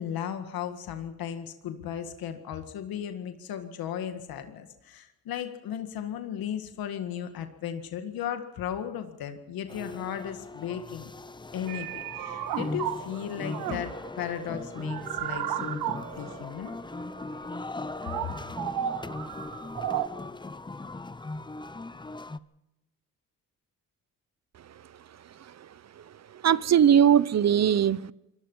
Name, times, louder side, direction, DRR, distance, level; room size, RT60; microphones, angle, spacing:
voice 1, 0.0-11.1 11.5-16.7 18.2-18.3, left 9 dB, 80° left, 1.9 m, -36 dB
sound 1, 9.7-22.4, left 2 dB, 15° left, 0.7 m, -39 dB
sound 2, 11.7-20.1, right 11 dB, 85° right, 1.6 m, -34 dB
voice 2, 26.4-28.1, right 9 dB, 45° right, 0.8 m, -20 dB
24.0 x 19.5 x 5.6 m
cardioid pair, 70°, 36 cm